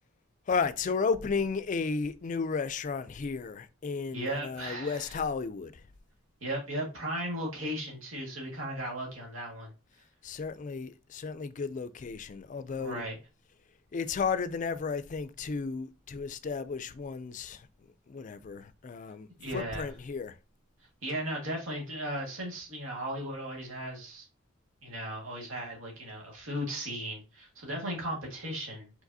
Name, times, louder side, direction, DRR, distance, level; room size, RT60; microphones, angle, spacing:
voice 1, 0.5-5.7 10.2-13.0 13.9-17.7 18.1-20.3, left 5 dB, 40° left, 0.3 m, -33 dB
voice 2, 4.1-5.2 6.4-9.7 12.8-13.2 19.4-19.9 21.0-24.3 24.8-28.9, right 1 dB, 85° right, 1.7 m, -36 dB
4.8 x 4.0 x 2.7 m
head